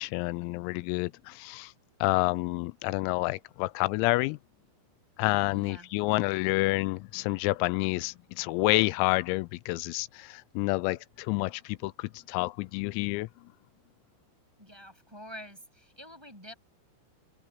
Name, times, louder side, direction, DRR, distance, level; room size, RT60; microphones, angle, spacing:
voice 1, 0.0-1.7 2.0-4.4 5.2-13.3, left 22 dB, 90° left, 3.4 m, -29 dB
voice 2, 5.5-5.9 14.6-16.5, equal, 5° right, 6.7 m, -47 dB
omnidirectional pair, 6.0 m